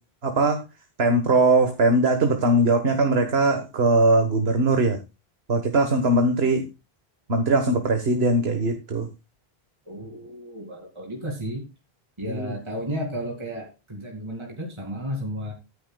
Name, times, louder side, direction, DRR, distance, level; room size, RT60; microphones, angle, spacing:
voice 1, 0.2-0.6 1.0-5.0 5.5-6.7 7.3-9.1 12.3-12.6, right 2 dB, 80° right, 6 dB, 1.6 m, -20 dB
voice 2, 9.9-11.7 12.2-15.5, equal, 30° right, 1 dB, 2.5 m, -33 dB
14.5 x 10.0 x 2.3 m, 0.26 s
omnidirectional pair, 1.0 m